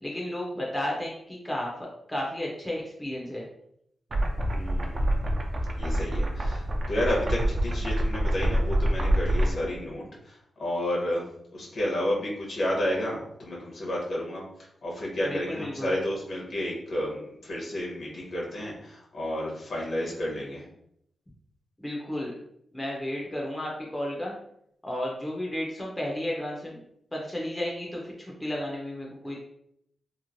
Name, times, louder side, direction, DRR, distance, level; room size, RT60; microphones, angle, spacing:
voice 1, 0.0-3.5 15.2-15.9 21.8-22.3 22.7-24.4 24.8-26.8 27.1-29.4, left 1 dB, 10° left, -3 dB, 0.5 m, -33 dB
sound 1, 4.1-9.5, right 1 dB, 45° right, 0.4 m, -26 dB
voice 2, 4.5-5.2 5.7-11.2 11.5-20.6, left 1 dB, 60° left, -3 dB, 0.9 m, -31 dB
2.9 x 2.1 x 2.5 m, 0.73 s
wide cardioid pair, 110°, 0 cm